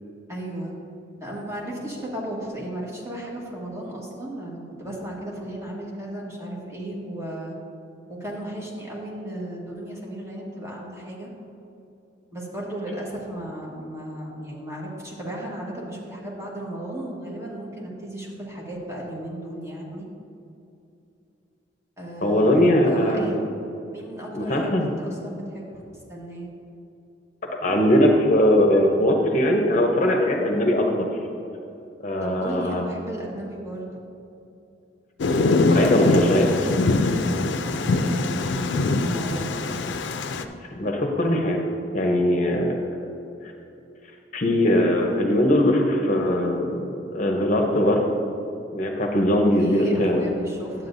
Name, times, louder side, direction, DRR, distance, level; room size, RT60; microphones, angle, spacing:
voice 1, 0.3-0.7 1.2-7.5 8.1-11.3 12.3-20.1 22.0-23.5 23.9-25.7 26.1-26.5 32.2-33.8 37.6-39.8 49.6-50.9, right 1 dB, 15° right, -4 dB, 1.5 m, -35 dB
voice 2, 22.2-23.4 24.3-24.9 27.6-31.1 32.0-32.8 35.7-36.5 40.7-41.6 41.9-42.8 44.3-48.0 48.7-50.3, left 1 dB, 45° left, 1 dB, 0.8 m, -20 dB
Thunder, 35.2-40.4, left 2 dB, 85° left, 0.4 m, -22 dB
11.0 x 7.6 x 2.6 m, 2.7 s
head